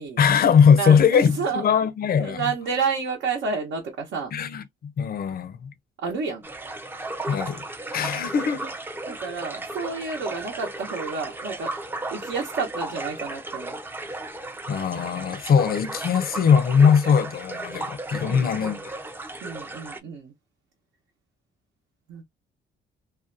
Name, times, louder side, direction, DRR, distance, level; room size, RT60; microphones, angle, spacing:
voice 1, 0.2-2.5 4.3-5.7 7.3-7.6 7.9-8.7 14.7-18.8, left 7 dB, 50° left, 0.5 m, -20 dB
voice 2, 0.8-1.6 2.2-4.3 6.0-6.4 9.1-11.7 12.1-13.8 18.2-18.8 19.4-20.3 22.1-22.2, right 5 dB, 75° right, 0.9 m, -30 dB
sound 1, 6.4-20.0, right 2 dB, 10° right, 0.4 m, -35 dB
2.5 x 2.2 x 2.5 m
cardioid pair, 90°, 20 cm